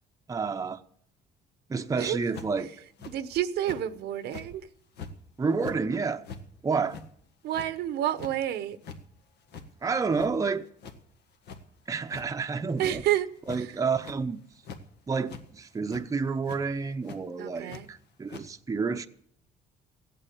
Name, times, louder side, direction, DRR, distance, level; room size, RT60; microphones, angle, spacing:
voice 1, 0.3-0.8 1.7-2.7 5.4-6.2 6.6-7.0 9.8-10.6 11.9-13.0 13.5-14.4 15.1-19.1, right 4 dB, 20° right, 0.8 m, -29 dB
sound 1, 2.3-2.6 3.0-3.1 3.6-3.8 4.2-4.5 5.0-5.1 5.5-5.8 6.2-6.4 6.9-7.1 7.5-7.7 8.2-8.3 8.7-9.0 9.5-9.6 10.0-10.5 10.8-11.0 11.4-11.6 12.1-12.2 12.7-12.9 13.4-13.6 13.9-14.2 14.6-14.8 15.3-15.4 15.9-16.1 16.5-16.6 17.0-17.2 17.7-17.8 18.3-18.4, left 5 dB, 75° left, 1.8 m, -42 dB
voice 2, 3.1-4.7 7.4-8.8 12.8-13.3 13.6-13.7 17.4-17.9, right 12 dB, 75° right, 0.9 m, -29 dB
15.5 x 8.8 x 8.4 m
cardioid pair, 110°, 17 cm